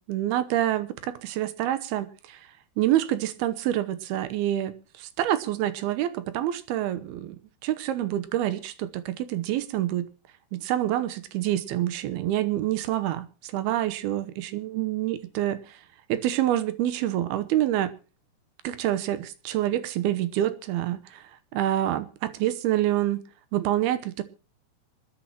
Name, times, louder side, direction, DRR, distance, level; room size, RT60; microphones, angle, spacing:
voice 1, 0.1-2.4 2.8-10.1 10.5-15.6 16.1-17.9 18.6-21.2 21.5-23.2 23.5-24.2, right 13 dB, 85° right, 2.9 m, -27 dB
26.0 x 10.5 x 3.0 m
omnidirectional pair, 4.5 m